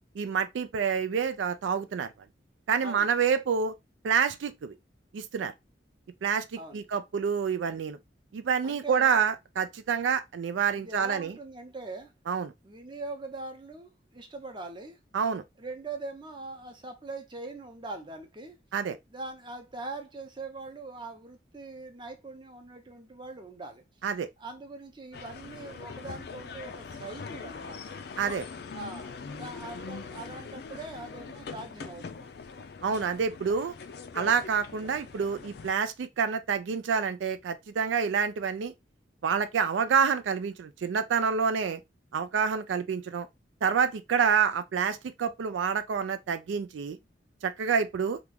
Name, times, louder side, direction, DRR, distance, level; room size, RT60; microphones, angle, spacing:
voice 1, 0.2-2.1 2.7-3.8 4.0-4.7 5.1-5.5 6.2-8.0 8.3-11.3 12.3-12.5 15.1-15.4 18.7-19.0 24.0-24.3 28.2-28.5 32.8-33.7 34.1-38.7 39.2-41.8 42.1-43.3 43.6-47.0 47.4-48.2, right 6 dB, 90° right, 0.4 m, -28 dB
voice 2, 6.6-6.9 8.6-9.2 10.7-12.1 12.6-15.0 15.6-18.6 19.1-23.8 24.4-28.0 28.7-32.3, right 3 dB, 25° right, 0.6 m, -42 dB
sound 1, 25.1-35.7, left 5 dB, 60° left, 0.4 m, -42 dB
3.0 x 2.4 x 3.4 m
head